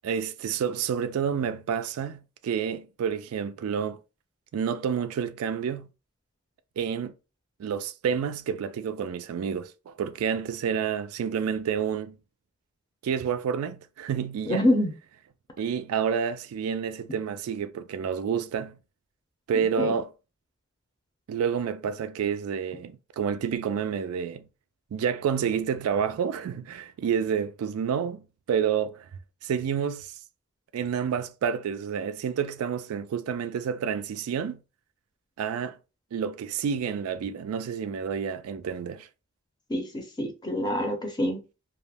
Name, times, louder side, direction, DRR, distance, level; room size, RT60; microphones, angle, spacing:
voice 1, 0.0-4.0 4.5-5.9 6.8-7.1 7.6-12.2 13.0-14.7 15.6-18.8 19.5-20.1 21.3-24.5 24.9-29.1 29.4-30.1 30.7-34.6 35.4-35.8 36.1-39.1, right 7 dB, 80° right, 0.3 m, -29 dB
voice 2, 14.5-14.9 19.8-20.0 39.7-39.8 40.2-41.4, left 1 dB, 20° left, 0.5 m, -25 dB
2.4 x 2.0 x 3.3 m
head